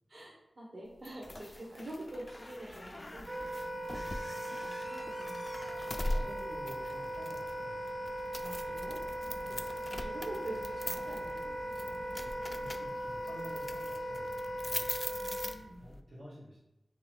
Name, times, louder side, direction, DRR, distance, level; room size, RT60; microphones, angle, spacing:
voice 1, 0.1-3.3 3.9-4.2 4.6-5.5 5.8-6.3 8.4-9.0 9.5-9.6 10.0-11.5 15.1-15.9, right 1 dB, 55° right, -5 dB, 1.1 m, -46 dB
sound 1, 1.0-16.0, left 1 dB, 35° left, 0.3 m, -42 dB
Wind instrument woodwind instrument, 3.3-15.5, right 1 dB, 35° right, 0.7 m, -39 dB
voice 2, 6.0-8.1 9.4-9.7 12.5-15.0 15.8-16.6, equal, 90° right, -7 dB, 1.5 m, -51 dB
3.1 x 3.0 x 4.4 m, 0.90 s
wide cardioid pair, 55°, 0 cm